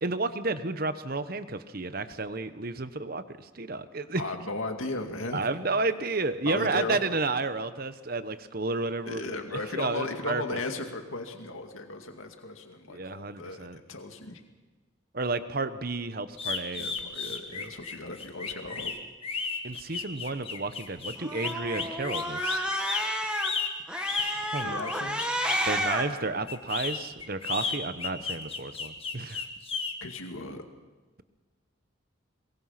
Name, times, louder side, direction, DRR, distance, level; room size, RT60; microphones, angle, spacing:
voice 1, 0.0-4.2 5.3-9.4 9.7-10.6 12.9-13.8 15.1-16.9 17.5-17.7 19.6-22.6 24.2-24.8 25.7-29.4, right 3 dB, 45° right, 12 dB, 1.0 m, -32 dB
voice 2, 4.1-5.5 6.5-7.0 9.1-14.4 16.7-18.9 24.6-25.3 30.0-30.6, left 2 dB, 80° left, 4 dB, 2.2 m, -36 dB
sound 1, 16.3-25.7 26.5-29.9, left 5 dB, 25° left, 1.8 m, -33 dB
Cat, 21.2-23.5 23.9-26.0, equal, 5° right, 1.9 m, -31 dB
22.5 x 22.0 x 5.8 m, 1.3 s
head